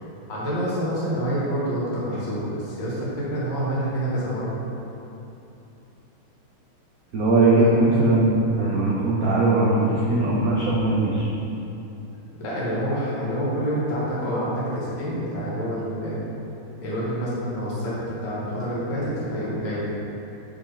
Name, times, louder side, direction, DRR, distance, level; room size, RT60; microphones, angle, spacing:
voice 1, 0.3-4.5 7.6-7.8 9.9-10.0 12.4-16.2 16.8-19.8, equal, 75° left, -8 dB, 2.3 m, -27 dB
voice 2, 7.1-11.3, right 2 dB, 60° right, -6 dB, 1.0 m, -20 dB
6.5 x 5.5 x 3.4 m, 2.9 s
omnidirectional pair, 2.2 m